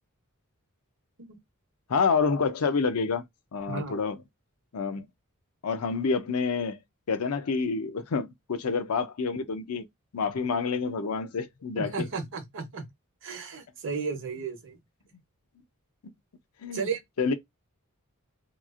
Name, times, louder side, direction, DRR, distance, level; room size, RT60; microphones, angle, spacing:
voice 1, 1.9-3.2 3.5-4.2 4.7-5.1 5.6-6.8 7.1-9.8 10.1-12.1 16.6-16.9 17.2-17.3, left 5 dB, 70° left, 0.5 m, -28 dB
voice 2, 3.7-4.0 11.8-12.9 13.2-14.8 16.7-17.0, right 5 dB, 60° right, 0.8 m, -34 dB
2.9 x 2.4 x 2.3 m
head